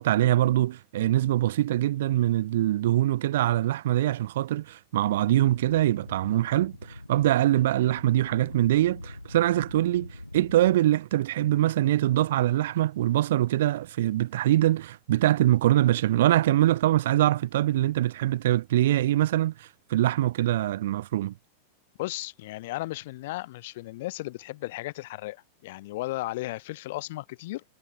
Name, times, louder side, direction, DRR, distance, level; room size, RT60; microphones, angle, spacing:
voice 1, 0.0-21.3, right 14 dB, 55° right, 0.4 m, -23 dB
sound 1, 5.2-10.8, left 1 dB, 85° left, 4.4 m, -43 dB
voice 2, 22.0-27.6, left 18 dB, 50° left, 2.2 m, -35 dB
figure-of-eight pair, 90°, 0 cm